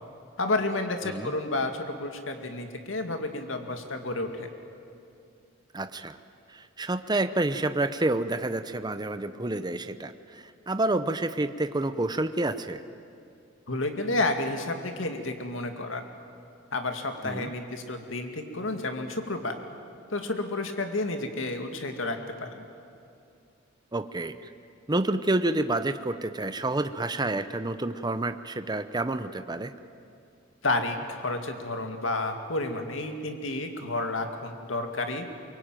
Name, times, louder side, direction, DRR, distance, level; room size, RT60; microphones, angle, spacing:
voice 1, 0.4-4.5 13.7-16.1 16.7-19.5 20.1-22.6 30.6-35.3, left 2 dB, 80° left, 5 dB, 2.3 m, -31 dB
voice 2, 5.7-6.2 6.5-12.8 17.2-17.5 23.9-24.5 24.9-29.7, right 2 dB, 20° right, 10 dB, 0.8 m, -29 dB
23.5 x 23.0 x 9.1 m, 2.5 s
head